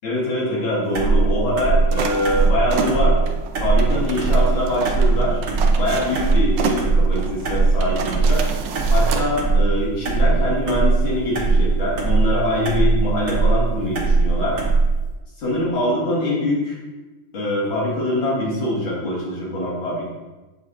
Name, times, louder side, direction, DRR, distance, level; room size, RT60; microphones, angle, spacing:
voice 1, 0.0-3.2 3.6-5.4 5.8-8.4 8.9-14.6 15.4-16.8 17.3-20.1, left 1 dB, 70° left, -5 dB, 2.6 m, -23 dB
sound 1, 0.9-15.1, right 4 dB, 50° right, 0.9 m, -19 dB
sound 2, 1.9-9.3, right 5 dB, 70° right, 1.2 m, -30 dB
7.1 x 6.4 x 2.5 m, 1.2 s
omnidirectional pair, 2.3 m